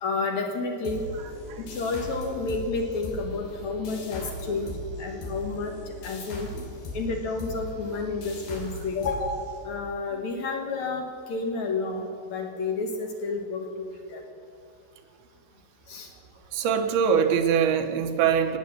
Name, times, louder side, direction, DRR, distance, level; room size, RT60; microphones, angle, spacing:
voice 1, 0.0-1.1 1.6-6.5 6.9-14.2 15.9-16.1, left 3 dB, 60° left, 3 dB, 2.2 m, -30 dB
sound 1, 0.8-10.1, left 1 dB, 85° left, 4.5 m, -39 dB
voice 2, 4.2-4.7 6.5-6.7 16.5-18.6, right 7 dB, 85° right, 6 dB, 3.0 m, -24 dB
17.5 x 9.0 x 7.6 m, 2.3 s
omnidirectional pair, 4.3 m